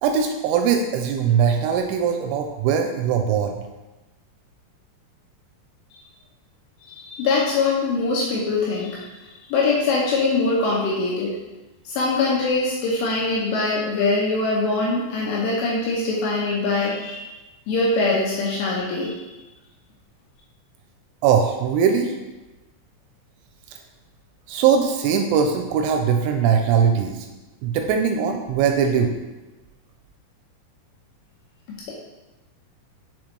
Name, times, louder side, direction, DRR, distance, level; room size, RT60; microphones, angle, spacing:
voice 1, 0.0-3.6 21.2-22.1 24.5-27.3 27.6-29.1, right 7 dB, 85° right, 4 dB, 2.8 m, -20 dB
voice 2, 6.8-9.0 9.5-11.3 11.9-17.3 17.7-19.1, left 3 dB, 80° left, -4 dB, 2.6 m, -22 dB
7.2 x 4.7 x 3.1 m, 1.1 s
omnidirectional pair, 5.8 m